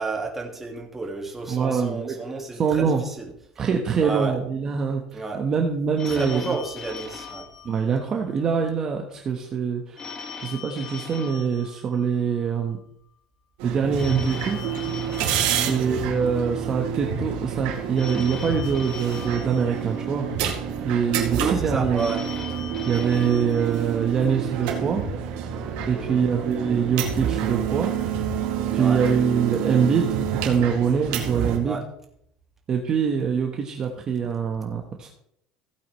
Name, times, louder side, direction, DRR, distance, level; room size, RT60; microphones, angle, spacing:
voice 1, 0.0-3.3 4.0-4.4 5.1-5.4 6.1-7.5 15.5-15.8 21.3-22.2 25.9-26.3 28.7-29.0 31.6-31.8, right 3 dB, 10° right, 0 dB, 1.9 m, -31 dB
voice 2, 1.5-2.1 2.5-3.0 3.6-6.6 7.6-12.8 13.6-14.6 15.5-20.3 20.8-22.1 22.9-25.0 25.9-27.9 28.7-31.8 32.7-35.1, right 6 dB, 30° right, 2 dB, 1.2 m, -24 dB
Telephone, 6.0-8.5 10.0-12.5 14.0-16.5 18.0-20.4 22.0-24.4, left 6 dB, 30° left, 1.8 m, -40 dB
sound 1, 13.6-31.6, right 8 dB, 75° right, 2.2 m, -28 dB
16.0 x 8.6 x 3.2 m, 0.71 s
cardioid pair, 150°, 2 cm